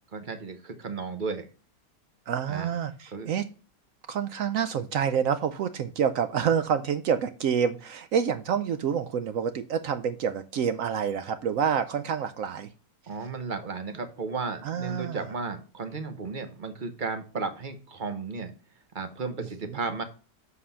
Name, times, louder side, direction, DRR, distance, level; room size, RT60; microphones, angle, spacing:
voice 1, 0.1-1.5 2.5-2.8 3.1-3.3 13.1-18.5 18.9-20.0, right 4 dB, 40° right, 7 dB, 0.8 m, -34 dB
voice 2, 2.3-3.4 4.1-12.7 14.6-15.3 19.7-19.8, right 7 dB, 70° right, 11 dB, 0.8 m, -28 dB
7.4 x 4.2 x 5.6 m, 0.37 s
omnidirectional pair, 1.8 m